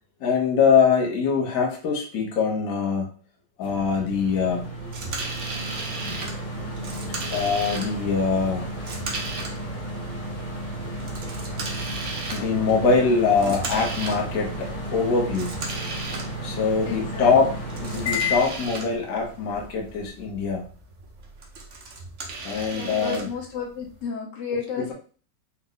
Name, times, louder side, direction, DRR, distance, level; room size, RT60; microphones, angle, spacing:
voice 1, 0.2-3.1 3.6-4.7 7.3-8.7 12.3-15.6 16.4-20.7 22.4-23.3 24.8-24.9, left 5 dB, 55° left, 0 dB, 1.2 m, -23 dB
sound 1, 3.6-20.1, equal, 25° left, 1.0 m, -33 dB
sound 2, 4.9-24.1, right 3 dB, 55° right, 0.9 m, -37 dB
voice 2, 16.8-17.3 22.7-24.9, left 6 dB, 70° left, 0 dB, 1.4 m, -33 dB
4.2 x 2.2 x 3.8 m, 0.40 s
omnidirectional pair, 2.0 m